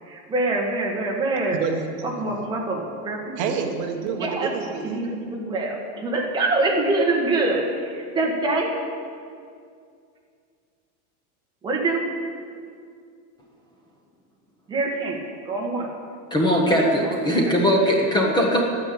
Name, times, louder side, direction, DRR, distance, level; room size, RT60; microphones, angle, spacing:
voice 1, 0.0-1.6 2.0-3.3 4.1-4.5 4.8-8.7 11.6-12.0 14.7-15.2 15.4-15.9 17.0-17.2 17.5-17.6, right 2 dB, 10° right, -3 dB, 1.6 m, -25 dB
voice 2, 1.6-2.4 3.4-5.0, right 5 dB, 40° right, 3 dB, 1.3 m, -28 dB
voice 3, 16.3-18.6, equal, 10° left, -1 dB, 1.0 m, -20 dB
12.0 x 10.0 x 8.6 m, 2.2 s
supercardioid pair, 180°, 43 cm